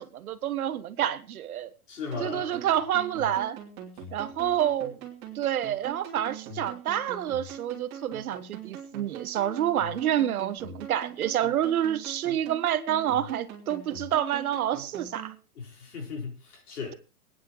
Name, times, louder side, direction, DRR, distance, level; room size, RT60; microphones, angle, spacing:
voice 1, 0.0-1.7 2.2-3.6 4.1-5.0 5.3-15.3, right 11 dB, 70° right, 1.2 m, -28 dB
voice 2, 1.9-2.6 15.6-16.9, left 4 dB, 80° left, 4.7 m, -37 dB
sound 1, 2.1-15.3, right 6 dB, 20° right, 3.0 m, -42 dB
25.5 x 9.6 x 3.1 m
hypercardioid pair, 165°, 45 cm